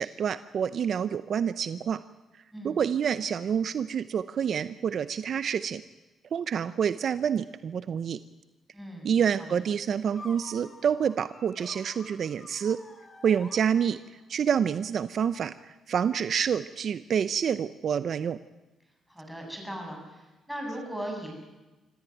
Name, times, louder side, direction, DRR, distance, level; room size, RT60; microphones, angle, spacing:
voice 1, 0.0-2.0 2.6-5.8 6.3-8.2 9.0-12.8 13.2-14.0 14.3-18.4, right 8 dB, 55° right, 14 dB, 0.7 m, -27 dB
voice 2, 8.7-9.1 9.4-9.5 19.1-21.3, right 1 dB, ahead, 1 dB, 7.8 m, -38 dB
sound 1, 10.1-14.3, left 2 dB, 25° left, 3.2 m, -49 dB
26.0 x 14.5 x 9.3 m, 1.1 s
cardioid pair, 90°, 0 cm